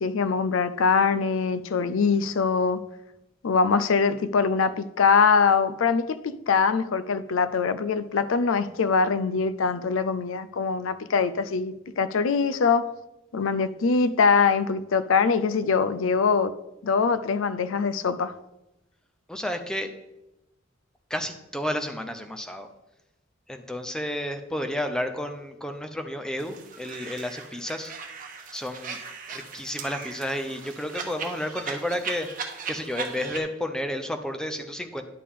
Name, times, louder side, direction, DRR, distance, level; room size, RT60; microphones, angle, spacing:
voice 1, 0.0-2.8 3.4-12.9 13.3-16.5 16.8-18.3, left 5 dB, 90° left, 0.5 m, -23 dB
voice 2, 19.3-19.9 21.1-22.7 23.5-27.9 28.5-29.0 29.3-35.0, left 1 dB, 5° left, 0.6 m, -31 dB
sound 1, 26.4-33.4, right 5 dB, 45° right, 1.1 m, -38 dB
10.0 x 6.7 x 3.7 m
head